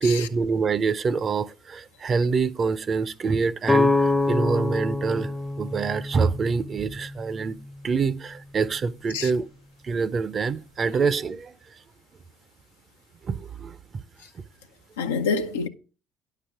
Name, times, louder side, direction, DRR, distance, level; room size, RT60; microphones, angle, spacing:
voice 1, 0.0-5.3 5.6-7.6 7.8-9.4 9.8-11.5 13.3-13.8, right 5 dB, 40° right, 0.6 m, -25 dB
sound 1, 3.7-7.5, left 2 dB, 5° left, 0.6 m, -25 dB
voice 2, 15.0-15.7, left 5 dB, 85° left, 0.6 m, -27 dB
10.0 x 6.7 x 4.6 m
hypercardioid pair, 55°, 0 cm